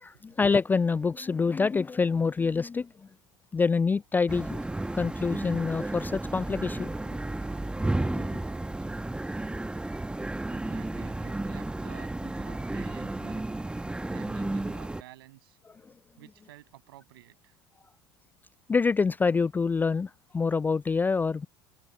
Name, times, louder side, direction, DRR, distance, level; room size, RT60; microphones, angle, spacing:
voice 1, 0.0-3.1 3.5-4.6 4.9-7.2 7.5-8.4 15.8-15.9 18.7-21.5, left 4 dB, 15° left, 0.3 m, -27 dB
sound 1, 4.3-15.0, right 2 dB, 5° right, 1.7 m, -33 dB
voice 2, 10.5-13.7 14.1-15.6 16.2-17.6, right 16 dB, 65° right, 7.0 m, -51 dB
figure-of-eight pair, 75°, 13 cm